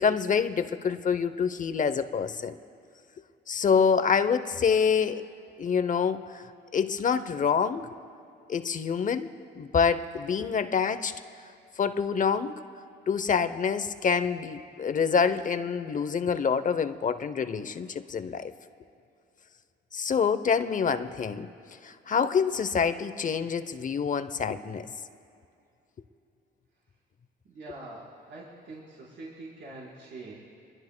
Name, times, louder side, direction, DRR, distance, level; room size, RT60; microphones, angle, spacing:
voice 1, 0.0-2.6 3.5-5.2 5.6-6.4 6.7-7.9 8.5-11.1 11.8-12.5 13.1-18.5 19.9-21.5 21.8-24.9, left 6 dB, 40° left, 12 dB, 0.7 m, -26 dB
voice 2, 27.4-30.3, right 2 dB, 65° right, -7 dB, 4.5 m, -44 dB
25.5 x 21.5 x 2.2 m, 2.6 s
cardioid pair, 90°, 20 cm